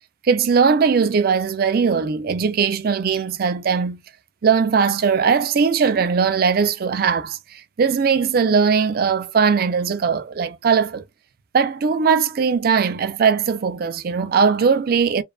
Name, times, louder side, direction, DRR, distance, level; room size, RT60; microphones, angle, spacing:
voice 1, 0.2-4.0 4.4-11.0 11.5-15.2, right 6 dB, 55° right, 0.4 m, -19 dB
2.7 x 2.3 x 2.3 m
head